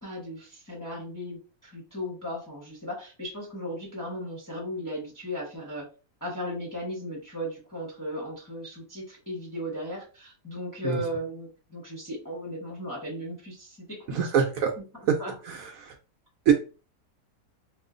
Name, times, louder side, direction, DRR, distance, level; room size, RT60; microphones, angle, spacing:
voice 1, 0.0-5.8 6.2-14.3 14.8-14.9 15.2-15.3, equal, 15° left, -3 dB, 0.7 m, -36 dB
voice 2, 14.1-14.7 15.1-15.2 15.5-15.7 16.5-16.6, right 7 dB, 70° right, 3 dB, 0.9 m, -23 dB
2.9 x 2.4 x 3.7 m, 0.34 s
omnidirectional pair, 1.7 m